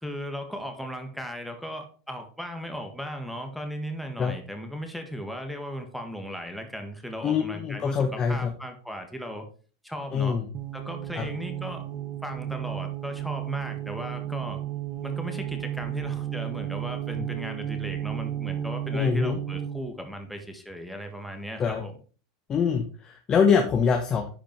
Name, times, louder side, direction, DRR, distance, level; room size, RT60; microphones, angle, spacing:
voice 1, 0.0-9.5 9.8-10.4 10.7-11.9 12.2-14.6 15.0-21.9, equal, ahead, 4 dB, 1.6 m, -37 dB
voice 2, 7.2-8.5 10.1-10.5 11.1-11.2 18.9-19.4 21.6-21.8 22.5-24.3, left 6 dB, 30° left, 4 dB, 1.3 m, -24 dB
sound 1, 10.5-19.9, right 11 dB, 35° right, 1.2 m, -33 dB
10.5 x 5.0 x 4.6 m, 0.39 s
supercardioid pair, 120°, 2 cm